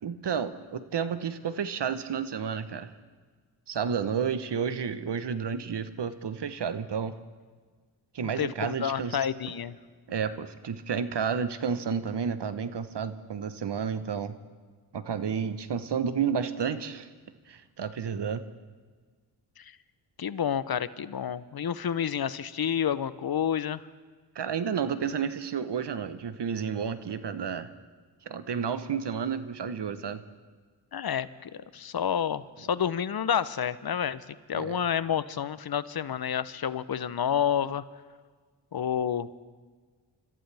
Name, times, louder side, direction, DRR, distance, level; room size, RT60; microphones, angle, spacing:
voice 1, 0.0-2.9 3.7-7.1 8.1-9.2 10.1-14.3 14.9-17.1 17.5-18.4 24.3-27.7 28.2-30.2 34.5-34.8, right 7 dB, 60° right, 12 dB, 1.1 m, -31 dB
voice 2, 8.2-9.8 19.6-19.7 20.2-23.8 30.9-37.8 38.7-39.3, left 8 dB, 50° left, 16 dB, 0.8 m, -29 dB
26.0 x 14.5 x 3.4 m, 1.5 s
cardioid pair, 50°, 48 cm